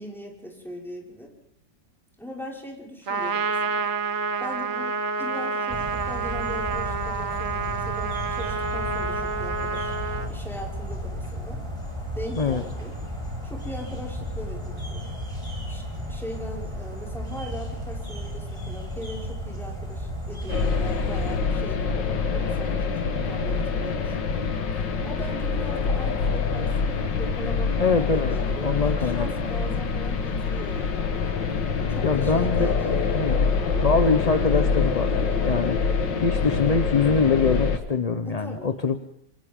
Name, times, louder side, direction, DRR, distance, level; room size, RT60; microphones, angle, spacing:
voice 1, 0.0-1.3 2.2-3.8 4.4-11.6 12.1-13.0 13.4-15.1 15.7-23.0 23.3-31.4 31.9-33.2 35.9-36.2 38.2-38.8, equal, ahead, -3 dB, 5.7 m, -40 dB
Trumpet, 3.1-10.3, right 4 dB, 50° right, 1.4 m, -28 dB
sound 1, 5.7-21.4, equal, 15° right, 5.1 m, -34 dB
sound 2, 20.5-37.8, left 5 dB, 75° left, 2.3 m, -25 dB
voice 2, 27.8-28.4 28.6-29.7 32.0-32.7 33.1-33.5 33.8-35.1 35.4-35.8 36.2-39.0, left 4 dB, 35° left, 8 dB, 0.6 m, -24 dB
27.5 x 27.0 x 3.8 m, 0.70 s
omnidirectional pair, 2.0 m